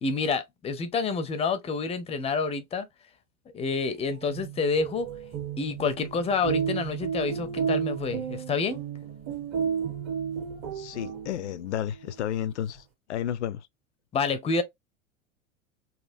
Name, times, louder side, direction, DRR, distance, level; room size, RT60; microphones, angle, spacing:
voice 1, 0.0-2.9 3.5-5.1 5.6-8.8 14.1-14.6, left 4 dB, 15° left, 0.6 m, -28 dB
sound 1, 4.0-11.7, right 7 dB, 35° right, 1.5 m, -32 dB
voice 2, 10.8-12.8 13.1-13.6, left 10 dB, 60° left, 0.5 m, -31 dB
4.2 x 2.8 x 2.7 m
figure-of-eight pair, 85°, 39 cm